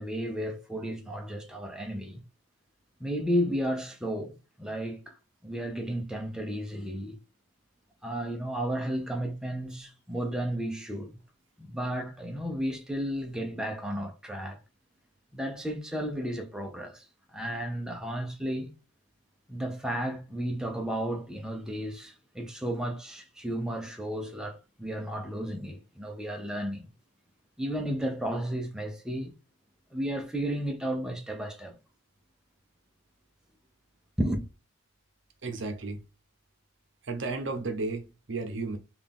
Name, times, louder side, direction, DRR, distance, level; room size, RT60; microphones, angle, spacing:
voice 1, 0.0-2.2 3.0-5.2 5.4-7.2 8.0-11.2 11.6-14.6 15.3-18.7 19.5-26.9 27.6-29.3 29.9-31.7 34.2-34.4, equal, 5° right, 0.5 m, -33 dB
voice 2, 35.4-36.0 37.1-38.8, right 3 dB, 65° right, 0.7 m, -33 dB
3.8 x 2.4 x 3.5 m
head